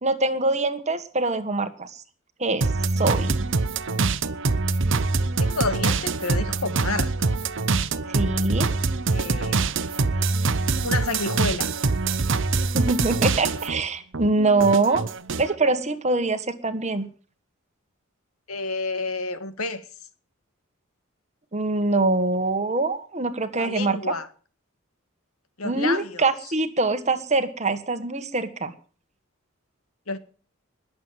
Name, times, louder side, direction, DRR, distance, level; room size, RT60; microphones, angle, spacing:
voice 1, 0.0-2.0 2.4-2.7 3.0-3.5 8.1-8.7 12.7-15.0 15.4-17.1 21.5-24.0 25.6-28.7, right 3 dB, 30° right, 1.6 m, -24 dB
sound 1, 2.6-13.8 14.1-15.5, right 3 dB, 60° right, 0.9 m, -24 dB
voice 2, 5.1-7.3 9.1-10.2 10.8-11.7 18.5-19.9 23.5-24.3 25.6-26.3 30.1-30.2, left 3 dB, 90° left, 1.8 m, -30 dB
20.5 x 8.0 x 7.5 m
head